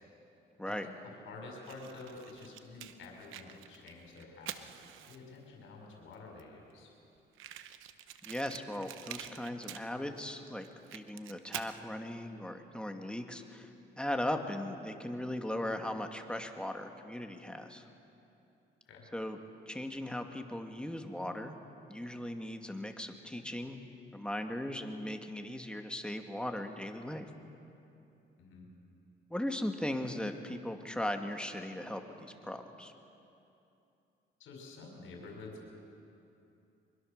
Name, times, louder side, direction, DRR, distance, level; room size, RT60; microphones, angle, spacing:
voice 1, 0.7-6.9 18.9-19.1 28.4-28.7 34.4-35.7, left 3 dB, 80° left, 0 dB, 5.3 m, -49 dB
Fire, 1.6-5.4 6.1-6.2 6.4-6.5 6.7-6.8 7.3-10.2 10.6-11.8, right 12 dB, 90° right, 0.9 m, -47 dB
voice 2, 8.3-10.7 10.9-13.7 14.0-17.9 19.1-19.4 19.7-21.5 21.9-23.8 24.1-27.3 29.3-32.9, left 1 dB, 5° left, 4 dB, 1.9 m, -38 dB
24.0 x 22.0 x 6.6 m, 2.8 s
cardioid pair, 90°, 20 cm